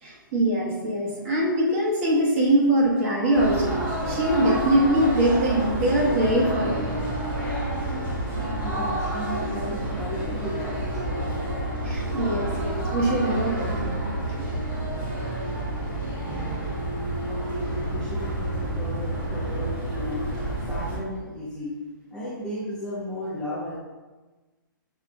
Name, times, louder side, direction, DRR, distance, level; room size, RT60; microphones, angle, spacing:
voice 1, 0.0-3.8 4.1-7.0 11.8-14.4 15.2-15.4, right 1 dB, 35° right, -4 dB, 1.2 m, -23 dB
sound 1, 3.3-21.0, right 1 dB, 15° right, 1.0 m, -29 dB
voice 2, 8.3-11.0 16.0-16.6 17.3-20.2 20.7-21.7 22.1-23.7, equal, 5° left, -8 dB, 0.7 m, -35 dB
5.8 x 2.4 x 3.8 m, 1.2 s
hypercardioid pair, 150°, 11 cm